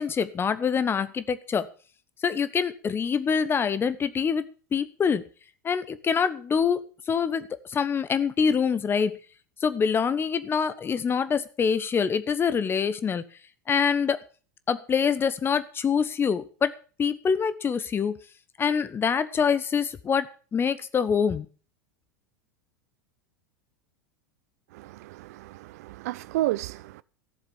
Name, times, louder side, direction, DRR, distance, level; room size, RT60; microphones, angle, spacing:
voice 1, 0.0-1.7 2.2-4.4 4.7-5.2 5.6-9.2 9.6-13.2 13.7-14.2 14.7-16.7 17.0-18.2 18.6-21.5, left 6 dB, 25° left, 1.1 m, -25 dB
voice 2, 24.7-27.0, right 16 dB, 60° right, 0.5 m, -32 dB
14.5 x 7.3 x 7.2 m
figure-of-eight pair, 85°, 10 cm